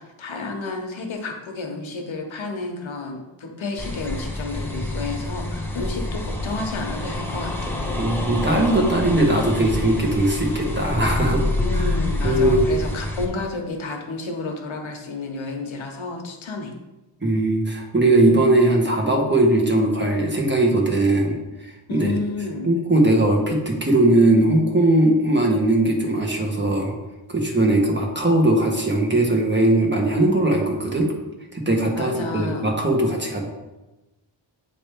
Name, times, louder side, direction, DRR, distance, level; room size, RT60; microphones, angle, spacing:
voice 1, 0.0-7.7 11.6-16.7 21.9-22.7 31.9-32.7, left 3 dB, 75° left, 3 dB, 1.1 m, -31 dB
sound 1, 3.8-13.2, left 1 dB, 5° left, 0.9 m, -27 dB
voice 2, 8.0-11.4 11.7-11.8 12.2-12.6 17.2-21.4 21.9-22.1 22.6-26.9 27.3-31.1 31.5-33.5, right 1 dB, 25° right, 0 dB, 1.2 m, -19 dB
8.5 x 3.3 x 4.5 m, 1.0 s
wide cardioid pair, 130°, 47 cm